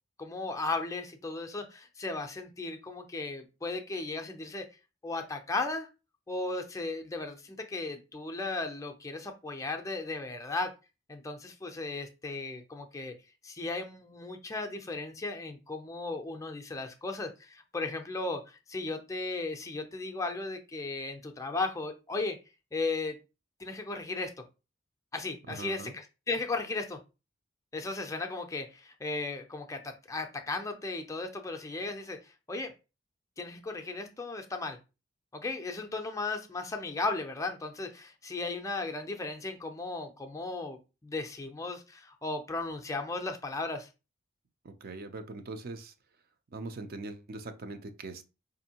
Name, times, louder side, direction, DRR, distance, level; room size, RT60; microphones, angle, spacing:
voice 1, 0.2-4.7 5.0-5.9 6.3-10.7 11.1-13.1 13.4-22.4 22.7-23.2 23.6-24.3 25.1-27.0 27.7-32.7 33.4-34.8 35.3-43.9, left 3 dB, 15° left, 0.4 m, -36 dB
voice 2, 25.5-26.0 44.6-45.9 46.5-48.2, right 3 dB, 50° right, 0.5 m, -41 dB
5.0 x 2.6 x 2.8 m
head